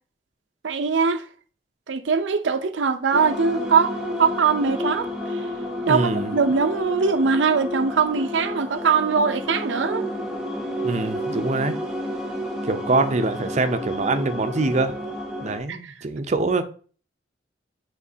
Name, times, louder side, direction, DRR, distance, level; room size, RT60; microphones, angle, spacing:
voice 1, 0.6-1.2 1.9-5.4 5.9-10.0 15.7-15.9, right 5 dB, 90° right, 0.5 m, -22 dB
sound 1, 3.1-15.6, left 1 dB, 5° right, 0.9 m, -31 dB
voice 2, 5.9-6.3 10.8-11.8 12.6-14.9 15.4-16.6, right 3 dB, 40° right, 0.6 m, -24 dB
9.5 x 3.8 x 2.7 m
head